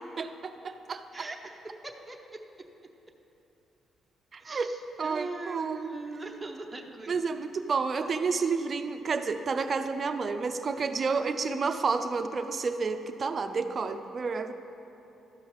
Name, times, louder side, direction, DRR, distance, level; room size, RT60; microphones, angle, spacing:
voice 1, 0.2-1.3 4.3-4.7 5.0-6.0 7.1-14.5, right 4 dB, 45° right, 9 dB, 0.5 m, -30 dB
voice 2, 1.1-1.5 1.8-2.2 4.4-7.2, right 2 dB, 15° right, 2 dB, 0.8 m, -40 dB
13.0 x 5.5 x 4.7 m, 2.9 s
cardioid pair, 90°, 0 cm